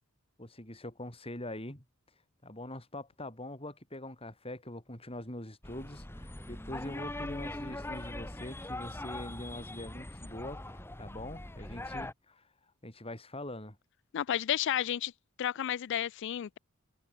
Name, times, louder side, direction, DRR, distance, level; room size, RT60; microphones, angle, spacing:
voice 1, 0.4-1.8 2.4-10.6 11.0-12.4 12.8-13.8, left 1 dB, 30° left, 5.4 m, -43 dB
sound 1, 5.6-12.1, left 1 dB, 10° left, 1.4 m, -41 dB
voice 2, 14.1-15.1 15.4-16.6, left 10 dB, 60° left, 0.3 m, -31 dB
head